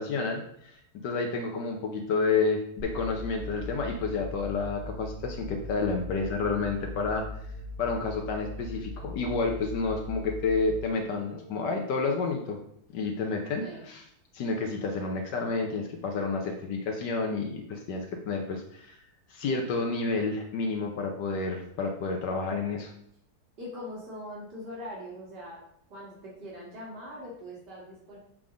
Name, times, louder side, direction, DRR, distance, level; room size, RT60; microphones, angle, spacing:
voice 1, 0.0-7.2 7.8-12.6 12.9-14.0 14.3-19.0 19.3-22.9, left 4 dB, 80° left, 2 dB, 1.4 m, -30 dB
sound 1, 2.8-11.8, left 1 dB, 20° right, 1.4 m, -40 dB
voice 2, 23.6-25.6 25.9-28.2, left 1 dB, 80° right, -6 dB, 2.7 m, -41 dB
7.4 x 3.7 x 5.0 m, 0.71 s
omnidirectional pair, 1.8 m